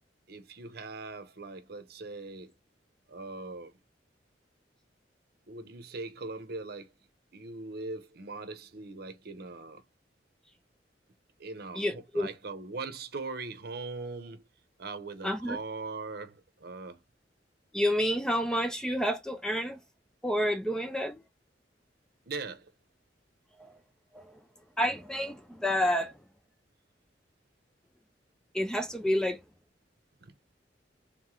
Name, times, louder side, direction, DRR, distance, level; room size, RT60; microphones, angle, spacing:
voice 1, 0.3-2.5 3.1-3.7 5.5-6.9 7.3-9.8 11.4-14.5 14.8-17.0 22.3-22.7 30.2-30.3, right 3 dB, 60° right, 0.8 m, -40 dB
voice 2, 11.7-12.3 15.2-15.6 17.7-19.8 20.2-21.2 23.6-23.7 24.1-24.4 24.8-26.1 28.5-29.4, equal, 5° left, 0.4 m, -29 dB
3.6 x 3.1 x 3.7 m
head